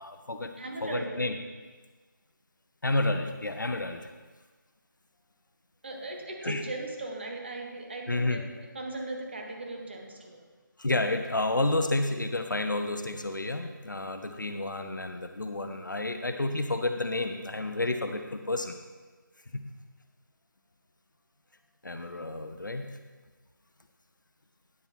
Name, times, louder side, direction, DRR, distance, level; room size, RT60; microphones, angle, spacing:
voice 1, 0.0-0.5 0.8-1.4 2.8-4.1 6.4-6.6 8.1-8.4 10.8-18.8 19.5-19.6 21.8-22.9, left 2 dB, 65° left, 7 dB, 0.9 m, -30 dB
voice 2, 0.6-1.1 5.8-10.5, right 2 dB, 30° right, 2 dB, 1.4 m, -38 dB
9.9 x 6.9 x 4.3 m, 1.3 s
figure-of-eight pair, 165°, 11 cm